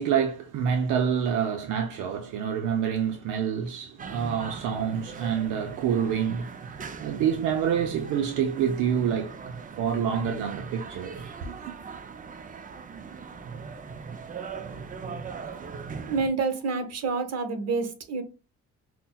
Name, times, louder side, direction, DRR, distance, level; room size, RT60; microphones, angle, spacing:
voice 1, 0.0-9.4 9.8-11.6, right 8 dB, 80° right, 0.6 m, -27 dB
sound 1, 4.0-16.3, right 5 dB, 30° right, 0.4 m, -40 dB
voice 2, 16.1-18.2, right 4 dB, 55° right, 0.9 m, -28 dB
5.6 x 2.1 x 2.2 m
cardioid pair, 90°, 30 cm